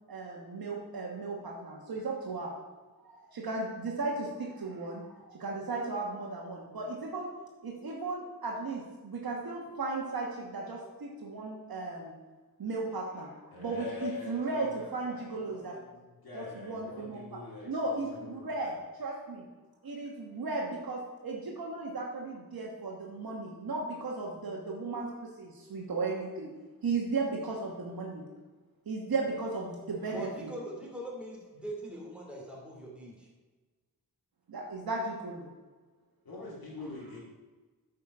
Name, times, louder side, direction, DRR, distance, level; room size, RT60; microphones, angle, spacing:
voice 1, 0.1-2.5 3.0-7.3 7.6-12.1 12.6-15.8 16.3-17.4 17.7-19.5 19.8-25.1 25.4-26.5 26.8-28.3 28.9-30.5 34.5-35.5, right 3 dB, 75° right, -1 dB, 1.3 m, -36 dB
voice 2, 13.5-18.5 36.2-37.2, left 4 dB, 80° left, -7 dB, 2.2 m, -44 dB
voice 3, 30.1-33.3, right 1 dB, 5° right, -3 dB, 2.7 m, -42 dB
9.0 x 5.2 x 5.9 m, 1.3 s
wide cardioid pair, 115°, 36 cm